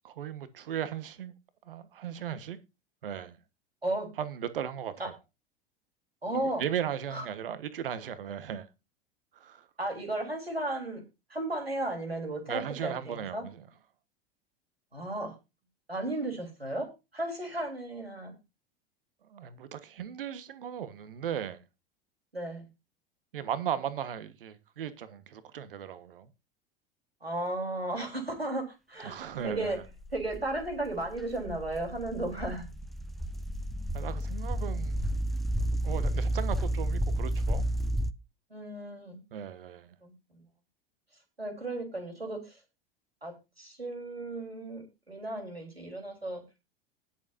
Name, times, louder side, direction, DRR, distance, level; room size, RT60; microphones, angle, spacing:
voice 1, 0.0-1.3 1.6-2.6 3.0-3.4 4.2-5.1 6.3-8.7 9.3-9.7 12.5-13.6 19.2-21.6 23.3-26.3 29.0-29.8 33.9-35.1 35.8-37.6 39.3-39.9, right 9 dB, 65° right, 1.4 m, -37 dB
voice 2, 6.2-6.6 7.1-7.2 9.8-11.0 11.3-13.4 14.9-15.3 15.9-18.3 22.3-22.7 27.2-29.8 30.1-32.6 38.5-39.2 40.0-40.4 41.4-42.6 43.2-46.4, right 2 dB, 90° right, 3.9 m, -35 dB
sound 1, 29.6-38.1, right 1 dB, ahead, 0.6 m, -32 dB
19.5 x 7.3 x 2.7 m
figure-of-eight pair, 80°, 29 cm